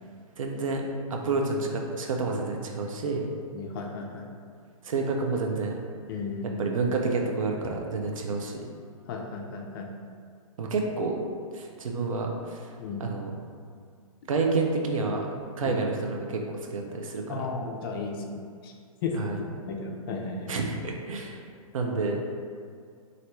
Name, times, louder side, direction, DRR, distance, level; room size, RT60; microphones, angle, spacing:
voice 1, 0.4-0.8 1.1-3.3 4.8-5.8 6.6-8.6 10.6-11.2 11.5-12.7 13.0-13.3 14.3-15.3 15.6-17.5 19.2-19.4 20.5-21.4 21.7-22.2, right 3 dB, 65° right, 1 dB, 0.5 m, -29 dB
voice 2, 3.5-4.3 6.1-6.7 9.1-9.9 12.8-13.0 15.6-15.8 17.3-18.7 19.0-20.5, left 4 dB, 40° left, 1 dB, 0.4 m, -34 dB
3.0 x 2.5 x 3.0 m, 2.1 s
figure-of-eight pair, 120°, 18 cm